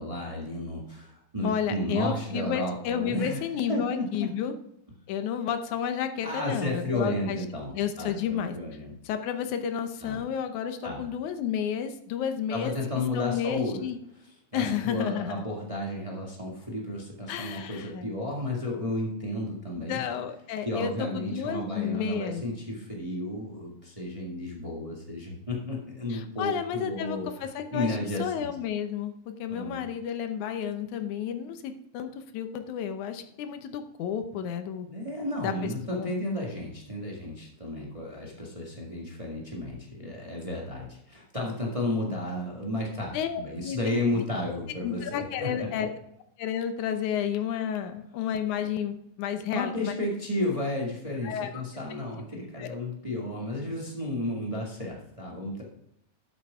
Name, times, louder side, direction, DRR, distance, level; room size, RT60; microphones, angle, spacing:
voice 1, 0.0-3.4 3.7-4.3 6.2-8.9 10.0-10.2 10.8-11.0 12.5-13.9 14.2-20.0 20.6-27.4 27.7-28.5 29.5-29.9 34.9-45.7 49.5-55.6, left 1 dB, 15° right, -2 dB, 1.4 m, -33 dB
voice 2, 1.4-4.5 5.1-7.4 7.7-8.6 9.1-12.7 13.1-14.0 14.5-15.4 17.3-18.1 19.8-22.4 26.1-29.1 29.4-34.9 35.4-36.1 43.1-43.8 44.1-44.5 44.8-45.9 46.4-49.9 51.2-51.5 52.6-52.7, left 8 dB, 90° left, 8 dB, 2.3 m, -31 dB
12.5 x 8.0 x 3.6 m, 0.76 s
omnidirectional pair, 3.3 m